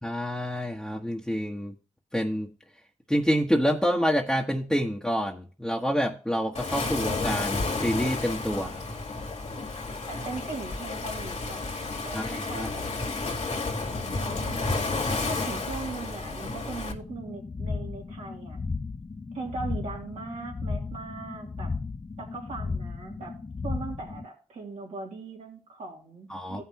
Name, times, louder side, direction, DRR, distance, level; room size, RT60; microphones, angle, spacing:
voice 1, 0.0-1.7 2.1-2.5 3.1-8.8 12.1-12.7 26.3-26.6, equal, 5° left, -1 dB, 1.4 m, -27 dB
Waves surf, 6.5-16.9, left 3 dB, 65° left, 2.0 m, -31 dB
voice 2, 10.1-12.9 13.8-14.8 15.1-18.6 19.3-21.7 22.2-23.3 23.6-26.6, right 3 dB, 75° right, -1 dB, 3.0 m, -39 dB
sound 1, 16.9-24.2, left 4 dB, 30° left, 0.6 m, -35 dB
16.5 x 5.8 x 3.0 m, 0.38 s
supercardioid pair, 45°, 12 cm